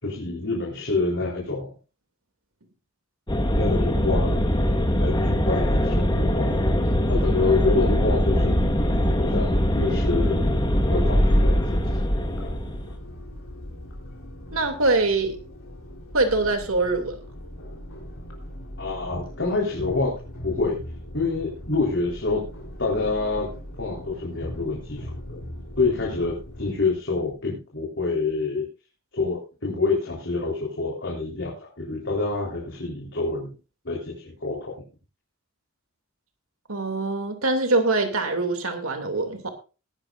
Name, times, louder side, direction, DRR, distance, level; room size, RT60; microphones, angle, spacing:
voice 1, 0.0-1.7 3.6-4.6 5.0-6.6 7.1-10.6 10.9-11.9 12.4-12.6 18.8-20.2 20.4-20.8 21.1-22.4 22.8-23.5 23.8-25.4 25.8-28.7 29.1-33.5 33.8-34.7, left 3 dB, 55° left, 4.0 m, -27 dB
sound 1, 3.3-12.9, equal, 20° left, 1.6 m, -22 dB
sound 2, 10.1-26.7, equal, 75° left, 3.9 m, -40 dB
voice 2, 14.5-15.4 16.1-17.2 36.7-39.5, right 3 dB, 75° right, 2.7 m, -23 dB
21.0 x 10.5 x 2.6 m
head